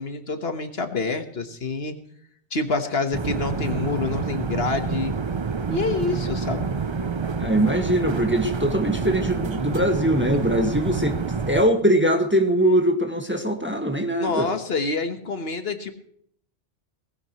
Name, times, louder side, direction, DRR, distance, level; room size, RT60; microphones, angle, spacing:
voice 1, 0.0-2.0 2.5-5.1 5.7-6.7 14.2-15.9, left 3 dB, 65° left, 7 dB, 1.6 m, -27 dB
sound 1, 3.1-11.6, right 5 dB, 35° right, 0.5 m, -28 dB
voice 2, 7.4-11.2 11.5-14.4, right 1 dB, 10° right, 4 dB, 1.7 m, -21 dB
19.5 x 16.0 x 3.1 m, 0.65 s
omnidirectional pair, 1.1 m